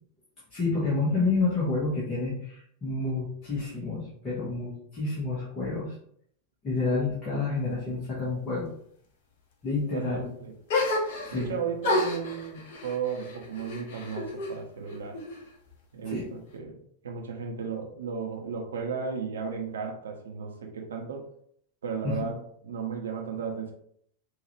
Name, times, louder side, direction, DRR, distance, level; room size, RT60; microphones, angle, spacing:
voice 1, 0.5-5.9 6.6-8.7 9.6-10.3 11.2-11.5 16.0-16.3 22.0-22.3, left 3 dB, 25° left, -8 dB, 1.7 m, -29 dB
voice 2, 9.9-10.5 11.3-15.2 15.9-21.3 21.8-23.7, right 6 dB, 65° right, 2 dB, 0.9 m, -35 dB
sound 1, 10.7-11.5 11.8-14.6 14.9-15.7, left 2 dB, 50° left, 1.0 m, -30 dB
5.8 x 2.7 x 3.3 m, 0.66 s
figure-of-eight pair, 90°, 0 cm